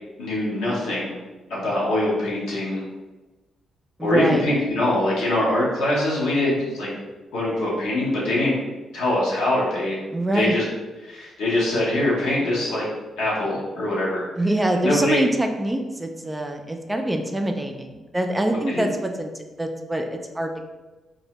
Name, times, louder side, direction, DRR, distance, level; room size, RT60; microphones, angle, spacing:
voice 1, 0.2-1.2 1.5-2.8 4.0-6.9 7.3-8.6 8.9-10.0 10.3-10.6 11.0-12.9 13.2-14.2 14.8-15.2 18.7-18.9, left 1 dB, 80° left, -6 dB, 0.9 m, -23 dB
voice 2, 4.0-4.4 10.1-10.6 14.4-20.6, right 1 dB, 15° right, 4 dB, 0.4 m, -24 dB
2.6 x 2.0 x 3.0 m, 1.2 s
supercardioid pair, 50°, 0 cm